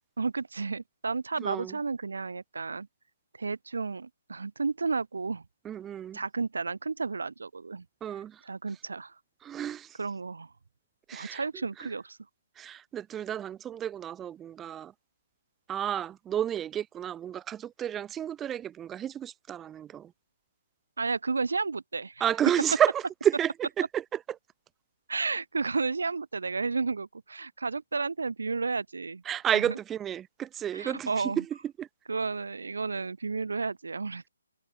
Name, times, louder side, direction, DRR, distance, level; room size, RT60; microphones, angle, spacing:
voice 1, 0.2-2.9 3.4-5.4 6.1-7.9 8.4-9.2 10.0-10.5 11.1-12.2 21.0-22.3 25.1-29.2 29.5-29.8 30.7-31.4 32.1-34.3, right 4 dB, 70° right, 7.1 m, -32 dB
voice 2, 1.4-1.8 5.6-6.2 8.0-8.4 9.4-10.0 11.1-11.4 11.8-11.9 12.6-14.9 15.7-20.1 22.2-24.4 29.3-31.5 31.8-31.9, right 10 dB, 10° right, 3.8 m, -31 dB
figure-of-eight pair, 145°, 0 cm